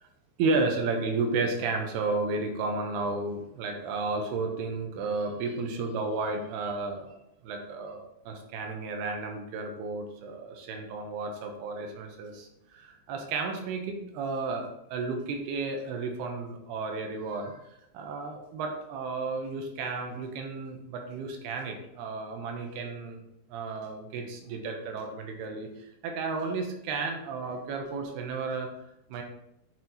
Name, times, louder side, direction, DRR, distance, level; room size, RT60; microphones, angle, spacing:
voice 1, 0.4-7.2 7.4-17.6 17.9-23.2 23.5-28.7 29.1-29.2, right 3 dB, 85° right, 3 dB, 2.9 m, -33 dB
8.0 x 4.5 x 4.1 m, 0.82 s
omnidirectional pair, 4.6 m